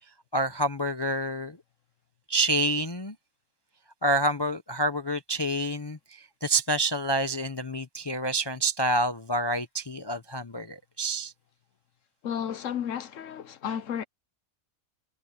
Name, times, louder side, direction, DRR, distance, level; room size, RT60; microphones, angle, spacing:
voice 1, 0.3-1.6 2.3-3.2 4.0-11.3, right 1 dB, 25° left, 0.6 m, -28 dB
voice 2, 12.2-14.0, left 8 dB, 65° left, 1.3 m, -32 dB
omnidirectional pair, 1.4 m